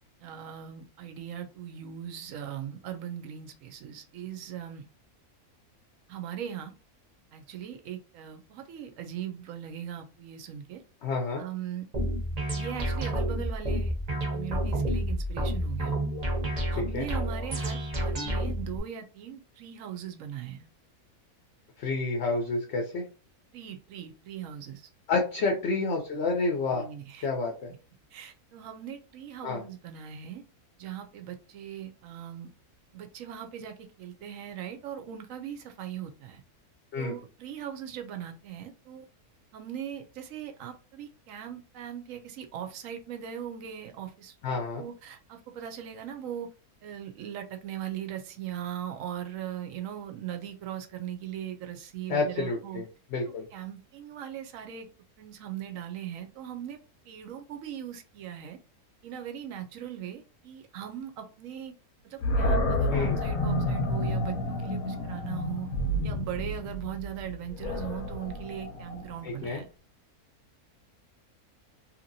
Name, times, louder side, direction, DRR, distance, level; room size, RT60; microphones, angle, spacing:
voice 1, 0.2-4.8 6.1-6.7 7.3-10.8 11.4-11.9 12.5-16.0 16.7-20.7 23.5-24.9 25.4-26.0 26.7-27.3 28.1-30.4 30.8-32.5 32.9-36.4 37.0-39.1 39.5-46.5 46.8-52.8 53.5-54.9 55.2-56.8 57.0-58.6 59.0-61.7 62.0-65.7 66.0-69.7, right 10 dB, 70° right, 6 dB, 0.9 m, -39 dB
voice 2, 11.0-11.4 16.7-17.1 21.8-23.0 25.1-26.8 27.2-27.7 29.4-29.6 36.9-37.2 44.4-44.8 52.1-52.8 53.1-53.4 62.9-63.2 69.2-69.6, left 3 dB, 60° left, 2 dB, 0.8 m, -29 dB
sound 1, 11.9-18.8, right 1 dB, 35° right, 0.7 m, -30 dB
Animal, 62.2-69.3, left 1 dB, 75° left, 1.1 m, -30 dB
2.8 x 2.8 x 2.6 m, 0.35 s
omnidirectional pair, 1.6 m